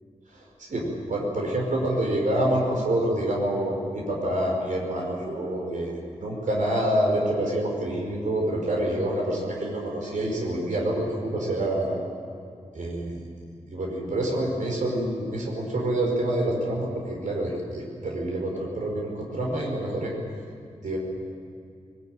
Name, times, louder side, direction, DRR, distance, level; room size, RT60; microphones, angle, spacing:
voice 1, 0.3-12.0 12.7-13.2 13.7-20.1 20.8-21.0, right 1 dB, 85° right, -1 dB, 5.4 m, -27 dB
21.0 x 21.0 x 9.2 m, 2.3 s
wide cardioid pair, 130°, 13 cm